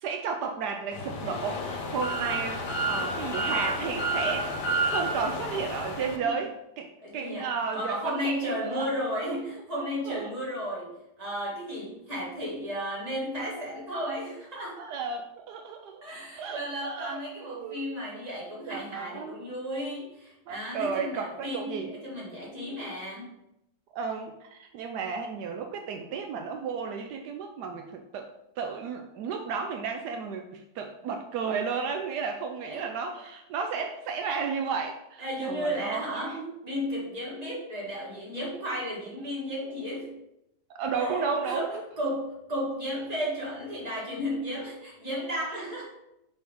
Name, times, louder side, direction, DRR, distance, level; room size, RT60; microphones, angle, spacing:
voice 1, 0.0-4.5 4.8-8.9 9.2-9.4 10.1-10.3 14.8-16.0 16.4-17.9 18.7-19.4 20.5-21.9 23.9-28.3 28.6-36.5 40.7-41.8, right 5 dB, 80° right, 4 dB, 1.1 m, -33 dB
sound 1, 0.9-6.2, right 1 dB, 85° left, 1.5 m, -30 dB
voice 2, 7.0-10.9 11.2-14.8 16.0-23.3 32.6-32.8 35.2-36.4 36.6-40.1 40.9-45.9, equal, 25° right, -5 dB, 1.9 m, -34 dB
5.4 x 5.1 x 3.6 m, 0.85 s
omnidirectional pair, 1.8 m